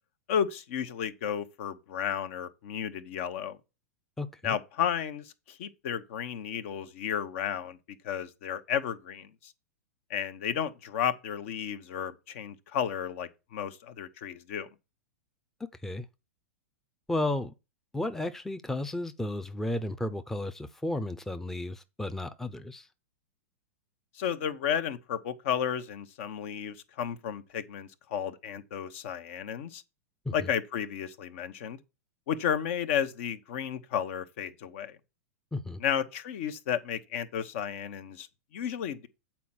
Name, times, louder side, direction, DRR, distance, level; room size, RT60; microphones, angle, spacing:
voice 1, 0.3-3.6 4.4-7.8 8.0-9.5 10.1-14.7 24.1-29.8 30.3-31.8 32.3-35.0 35.8-38.3 38.5-39.1, left 8 dB, 60° left, 1.0 m, -33 dB
voice 2, 4.2-4.6 15.6-16.0 17.1-17.5 17.9-22.9 30.3-30.5 35.5-35.8, left 2 dB, 5° left, 0.6 m, -33 dB
8.3 x 4.4 x 6.0 m
hypercardioid pair, 110°, 8 cm